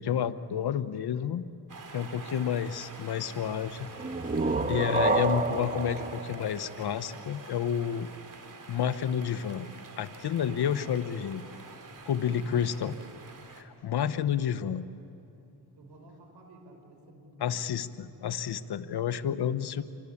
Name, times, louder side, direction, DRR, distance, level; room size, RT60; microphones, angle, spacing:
voice 1, 0.0-1.4 1.9-3.9 4.7-8.1 8.7-9.7 10.0-11.4 12.0-12.9 13.5-14.8 17.4-19.8, left 8 dB, 75° left, 11 dB, 1.1 m, -30 dB
sound 1, 1.7-13.6, right 4 dB, 55° right, 2.9 m, -47 dB
sound 2, 4.0-7.5, right 3 dB, 20° right, 1.5 m, -29 dB
voice 2, 12.2-12.9 15.7-17.7, right 2 dB, 90° right, 3 dB, 5.4 m, -52 dB
29.0 x 24.0 x 8.6 m, 2.8 s
cardioid pair, 80°, 39 cm